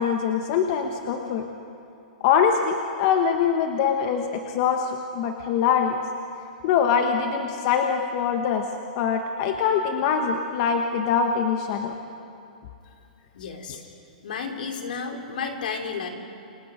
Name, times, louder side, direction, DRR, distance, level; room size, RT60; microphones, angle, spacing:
voice 1, 0.0-1.5 2.2-6.0 6.6-8.6 8.9-11.9 13.7-13.8, left 7 dB, 45° left, 4 dB, 1.4 m, -23 dB
voice 2, 13.3-13.8 14.2-16.1, left 5 dB, 75° left, 3 dB, 3.4 m, -32 dB
29.0 x 25.5 x 5.1 m, 2.6 s
hypercardioid pair, 145°, 5 cm